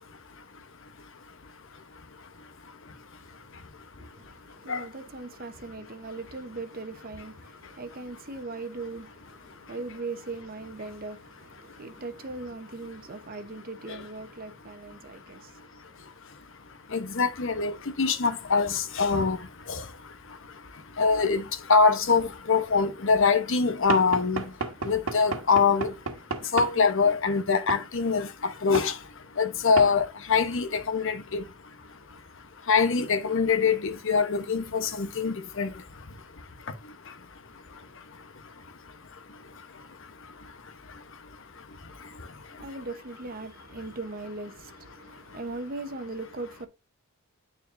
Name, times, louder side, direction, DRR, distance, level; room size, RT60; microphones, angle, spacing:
voice 1, 0.0-4.9 7.6-7.8 9.5-9.7 11.6-12.0 13.9-14.1 14.6-42.7 45.0-45.4, left 5 dB, 65° left, 1.0 m, -27 dB
voice 2, 4.0-15.8 42.1-46.7, right 3 dB, 45° right, 1.0 m, -39 dB
Knock / Wood, 23.9-26.8 27.7-27.9 28.7-28.9 29.8-29.9, right 3 dB, 85° right, 1.4 m, -32 dB
9.4 x 4.5 x 2.6 m
head